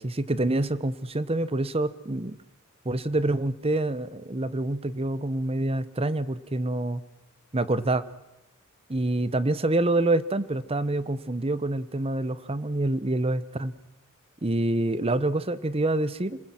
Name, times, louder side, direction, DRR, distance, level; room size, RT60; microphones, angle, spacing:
voice 1, 0.0-2.4 2.8-7.0 7.5-8.0 8.9-13.7 14.4-16.4, right 2 dB, 25° right, 16 dB, 0.9 m, -26 dB
27.0 x 20.0 x 7.7 m, 0.94 s
head